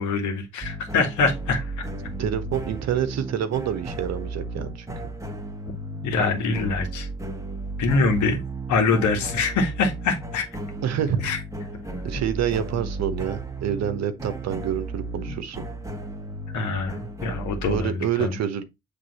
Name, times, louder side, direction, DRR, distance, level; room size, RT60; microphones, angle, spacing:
voice 1, 0.0-1.7 6.0-7.1 7.8-8.4 8.7-10.5 11.2-11.4 15.3-15.4 16.5-18.4, left 4 dB, 65° left, 1.8 m, -24 dB
sound 1, 0.6-17.8, right 2 dB, 10° right, 1.4 m, -34 dB
voice 2, 2.2-4.9 10.8-11.2 12.0-15.6 17.7-18.6, right 9 dB, 55° right, 1.0 m, -27 dB
Walk footsteps, 4.5-4.8 5.6-5.9 6.7-7.0 7.3-8.7 9.0-9.2 9.6-9.8 10.1-10.3 10.6-10.8 11.1-11.4 12.1-12.8, left 3 dB, 35° left, 2.1 m, -41 dB
7.8 x 3.4 x 4.1 m
hypercardioid pair, 45°, 32 cm